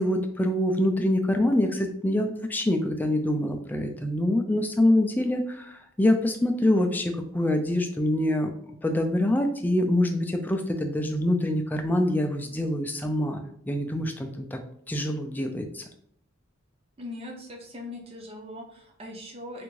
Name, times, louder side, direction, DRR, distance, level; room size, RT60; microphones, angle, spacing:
voice 1, 0.0-8.5 8.8-14.6 14.9-15.8, left 1 dB, 10° left, 4 dB, 0.3 m, -25 dB
voice 2, 17.0-19.6, left 1 dB, 30° right, 2 dB, 0.6 m, -40 dB
3.4 x 2.5 x 3.1 m, 0.68 s
head